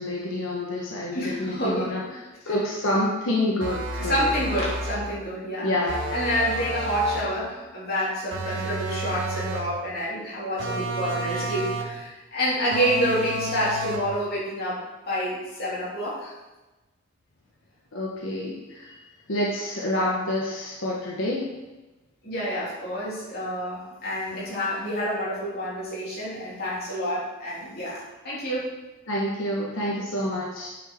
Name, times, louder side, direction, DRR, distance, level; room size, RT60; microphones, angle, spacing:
voice 1, 0.0-4.3 5.6-5.9 17.9-19.0 19.3-21.5 29.1-30.7, left 1 dB, 85° left, -4 dB, 1.4 m, -28 dB
voice 2, 1.1-2.1 2.4-2.5 4.0-5.7 6.1-16.3 22.2-28.8, equal, 50° left, -7 dB, 3.4 m, -28 dB
sound 1, 3.6-5.1 5.9-7.4 8.3-9.8 10.6-12.0 12.7-14.2, right 1 dB, 70° right, 1.3 m, -31 dB
9.1 x 6.5 x 4.4 m, 1.1 s
head